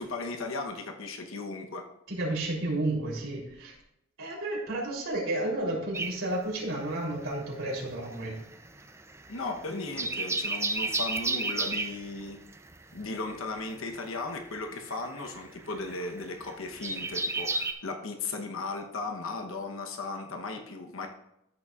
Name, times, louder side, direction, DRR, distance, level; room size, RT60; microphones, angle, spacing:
voice 1, 0.0-1.8 9.3-12.4 12.9-21.1, left 3 dB, 80° left, 3 dB, 1.0 m, -36 dB
voice 2, 2.1-3.7 4.2-8.4, right 1 dB, 80° right, -3 dB, 3.4 m, -32 dB
sound 1, 5.9-7.4 7.6-17.7, right 3 dB, 15° right, 0.5 m, -33 dB
13.5 x 6.8 x 2.4 m, 0.82 s
head